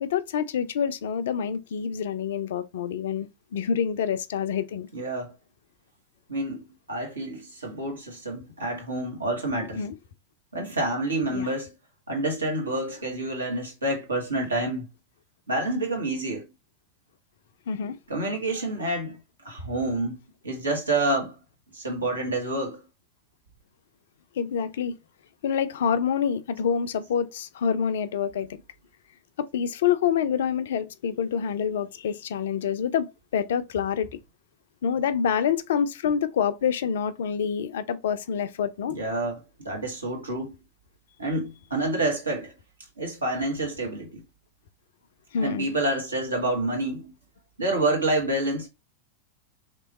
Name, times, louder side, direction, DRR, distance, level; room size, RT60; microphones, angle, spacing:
voice 1, 0.0-4.9 9.8-10.0 11.3-11.5 17.7-18.0 24.4-25.0 25.4-28.6 29.4-34.1 34.8-39.0 45.3-45.7, left 7 dB, 60° left, 0.4 m, -27 dB
voice 2, 4.9-5.3 6.3-9.8 10.5-11.7 12.1-14.8 15.5-16.4 18.1-19.2 19.4-20.2 20.4-21.3 21.7-22.8 38.9-40.5 41.2-42.5 43.0-44.2 45.4-47.1 47.6-48.7, right 2 dB, 75° right, 1.4 m, -28 dB
3.3 x 2.9 x 4.0 m
figure-of-eight pair, 90°, 0 cm